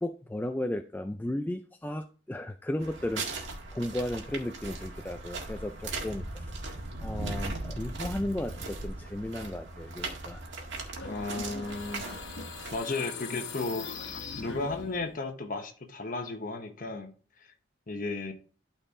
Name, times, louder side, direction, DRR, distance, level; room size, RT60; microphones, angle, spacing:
voice 1, 0.0-3.3 3.7-6.5 7.0-10.4, left 1 dB, 10° left, 0.3 m, -35 dB
sound 1, 2.8-12.8, right 2 dB, 70° right, 1.8 m, -38 dB
sound 2, 10.9-15.2, left 5 dB, 75° left, 1.1 m, -41 dB
voice 2, 11.0-12.0 12.7-13.9 14.4-17.1 17.9-18.3, left 3 dB, 45° left, 1.2 m, -34 dB
12.0 x 4.4 x 3.7 m
head